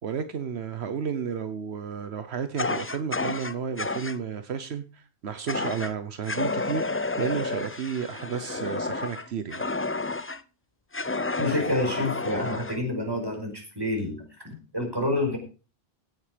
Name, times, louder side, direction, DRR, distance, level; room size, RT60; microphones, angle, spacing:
voice 1, 0.0-9.7, right 7 dB, 80° right, 1.2 m, -32 dB
Fire, 2.6-4.2 5.5-5.9 6.2-10.4 10.9-12.8, left 3 dB, 20° left, 0.4 m, -30 dB
voice 2, 11.4-15.4, left 1 dB, 20° right, 4.9 m, -28 dB
16.5 x 8.0 x 5.1 m
omnidirectional pair, 1.1 m